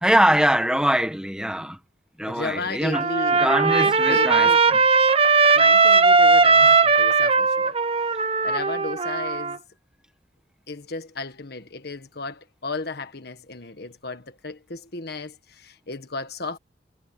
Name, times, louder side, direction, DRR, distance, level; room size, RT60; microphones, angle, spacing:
voice 1, 0.0-1.8 2.2-3.1 3.4-4.8 6.6-6.7, right 1 dB, 5° right, 1.5 m, -22 dB
voice 2, 2.3-4.6 5.5-7.8 8.1-9.6 10.7-16.6, left 3 dB, 55° left, 1.6 m, -34 dB
Trumpet, 2.9-9.6, right 4 dB, 30° right, 1.1 m, -18 dB
head